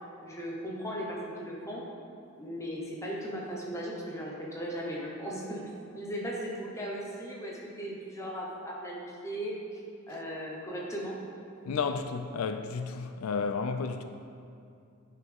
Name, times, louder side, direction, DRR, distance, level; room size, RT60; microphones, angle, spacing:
voice 1, 0.2-1.9 2.4-5.6 5.9-9.5 10.1-11.2, equal, 15° left, 1.0 m, -37 dB
voice 2, 11.7-14.0, left 5 dB, 85° left, 0.4 m, -32 dB
9.6 x 5.4 x 3.5 m
head